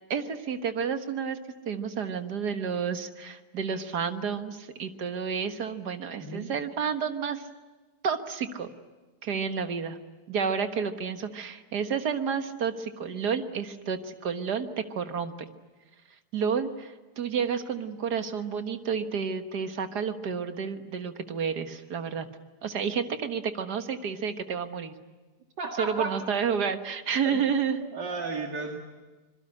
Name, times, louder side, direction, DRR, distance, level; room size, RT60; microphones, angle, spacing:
voice 1, 0.1-1.4 1.7-7.5 8.0-8.7 9.2-10.0 10.3-15.5 16.3-22.3 22.6-24.9 25.8-27.8, right 6 dB, 70° right, 8 dB, 2.0 m, -30 dB
voice 2, 6.2-6.5 25.6-26.1 27.2-27.4 27.9-28.8, right 3 dB, 85° right, 2 dB, 2.7 m, -33 dB
25.5 x 22.0 x 10.0 m, 1.2 s
omnidirectional pair, 1.8 m